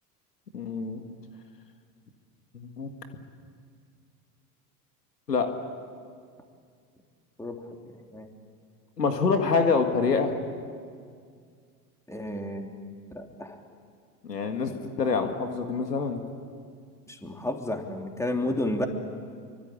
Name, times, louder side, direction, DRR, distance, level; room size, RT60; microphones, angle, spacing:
voice 1, 0.5-1.0 2.5-2.9 5.3-5.5 9.0-10.4 14.2-16.2, left 4 dB, 90° left, 6 dB, 2.2 m, -26 dB
voice 2, 12.1-12.7 13.1-13.6 17.1-18.9, left 1 dB, 5° left, 3 dB, 3.3 m, -31 dB
26.0 x 24.5 x 8.6 m, 2.2 s
hypercardioid pair, 80°, 47 cm